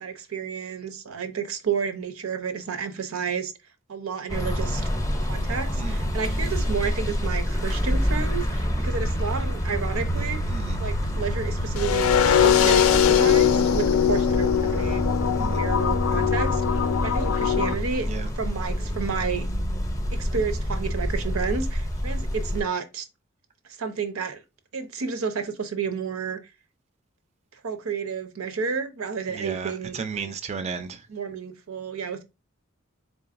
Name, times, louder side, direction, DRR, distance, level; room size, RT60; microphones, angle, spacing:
voice 1, 0.0-3.5 3.9-4.8 5.3-10.5 10.8-15.0 15.4-16.6 17.0-18.1 18.4-19.5 20.1-23.1 23.8-24.4 24.7-26.5 27.5-30.3 31.1-32.2, right 6 dB, 90° right, 0.7 m, -31 dB
sound 1, 4.3-22.6, equal, 15° left, 0.5 m, -27 dB
voice 2, 10.5-10.8 15.3-15.6 18.0-18.3 29.3-31.1, right 5 dB, 30° right, 0.4 m, -34 dB
sound 2, 11.8-17.7, left 9 dB, 75° left, 0.4 m, -21 dB
3.8 x 3.5 x 2.5 m
head